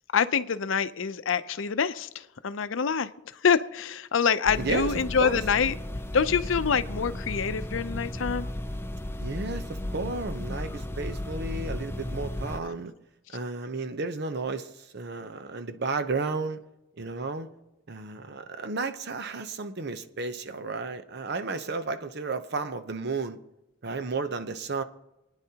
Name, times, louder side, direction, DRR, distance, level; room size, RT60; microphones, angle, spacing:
voice 1, 0.1-3.1 3.4-5.7 6.1-8.5, left 6 dB, 75° left, 13 dB, 0.6 m, -26 dB
sound 1, 4.5-12.6, left 1 dB, 10° left, 0.4 m, -34 dB
voice 2, 4.6-5.4 9.2-12.9 13.3-16.6 17.0-17.5 17.9-23.4 23.8-24.8, right 3 dB, 55° right, 10 dB, 0.8 m, -33 dB
28.5 x 9.9 x 2.9 m, 0.97 s
head